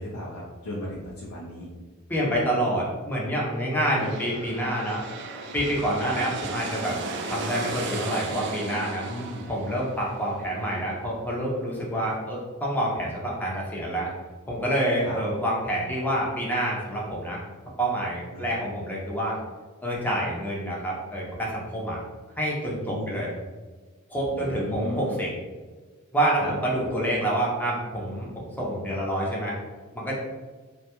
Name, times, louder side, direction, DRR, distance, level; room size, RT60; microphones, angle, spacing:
voice 1, 0.0-1.7 3.8-4.1 6.0-6.2 9.0-9.5 15.0-15.2 18.3-18.5 22.9-23.2 24.3-25.2 26.4-26.5, left 1 dB, 85° left, -4 dB, 0.5 m, -35 dB
voice 2, 2.1-5.0 5.5-7.0 7.3-9.1 9.5-14.1 14.5-17.4 17.8-19.4 19.8-22.0 22.4-23.3 24.1-25.3 26.1-29.6 29.9-30.1, right 1 dB, 10° left, -4 dB, 0.6 m, -27 dB
sound 1, 3.7-11.3, right 3 dB, 55° right, 0.3 m, -36 dB
2.5 x 2.2 x 2.8 m, 1.4 s
head